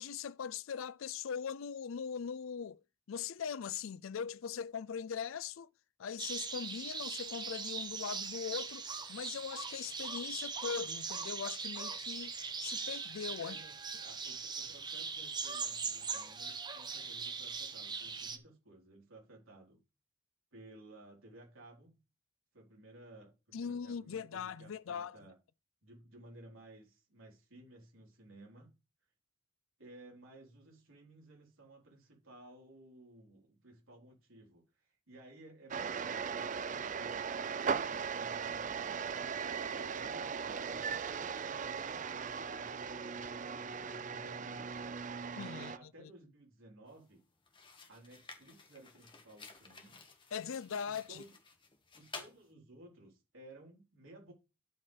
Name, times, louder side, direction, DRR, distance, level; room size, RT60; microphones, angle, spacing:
voice 1, 0.0-2.8 3.1-5.7 6.0-12.3 12.6-13.6 23.5-25.2 45.4-45.7 46.0-46.1 50.3-51.2, left 7 dB, 80° left, 0.4 m, -40 dB
sound 1, 6.2-18.4, right 5 dB, 20° right, 0.9 m, -40 dB
voice 2, 13.4-19.8 20.5-22.0 22.5-25.4 25.8-28.7 29.8-40.9 41.3-44.7 45.3-47.2 47.9-50.0 50.9-51.4 51.9-54.3, right 1 dB, 80° right, 4.0 m, -57 dB
sound 2, 35.7-45.8, right 6 dB, 40° right, 0.5 m, -38 dB
sound 3, 46.9-47.1 47.5-52.4, left 4 dB, 25° left, 1.5 m, -53 dB
13.5 x 5.4 x 3.3 m
head